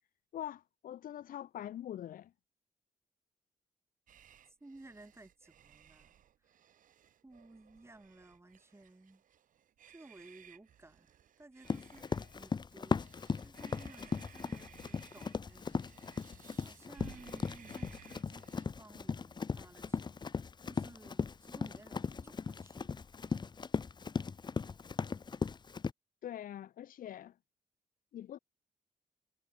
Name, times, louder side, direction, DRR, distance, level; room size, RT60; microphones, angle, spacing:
voice 1, 0.3-2.3 26.2-27.4 28.1-28.4, left 11 dB, 85° left, 0.9 m, -43 dB
sound 1, 4.1-18.7, right 10 dB, 75° right, 0.9 m, -59 dB
voice 2, 4.6-6.1 6.4-6.6 7.2-9.2 9.9-11.1 11.4-13.0 13.4-15.9 16.6-18.5 18.8-20.2 20.6-22.9, right 2 dB, 20° right, 7.3 m, -57 dB
Run, 11.6-25.9, left 5 dB, 30° left, 0.5 m, -37 dB
Gong, 17.0-22.2, right 6 dB, 55° right, 7.0 m, -73 dB
cardioid pair, 75°, 14 cm